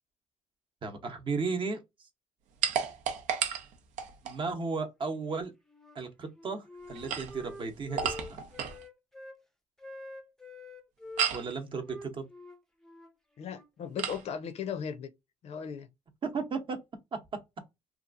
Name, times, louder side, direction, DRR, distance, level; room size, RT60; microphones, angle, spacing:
voice 1, 0.8-2.1 4.2-5.5 5.9-8.4 11.3-12.2 16.2-16.8, right 4 dB, 40° right, 0.8 m, -35 dB
sound 1, 2.6-4.4 6.9-8.8 11.2-11.5 14.0-14.2, right 8 dB, 75° right, 0.6 m, -33 dB
Wind instrument woodwind instrument, 5.2-6.0 6.3-9.4 9.8-11.3 11.8-14.3, left 2 dB, 5° left, 0.5 m, -47 dB
voice 2, 13.4-15.1 15.4-15.9, left 7 dB, 55° left, 0.5 m, -37 dB
2.8 x 2.4 x 2.4 m
cardioid pair, 95°, 13 cm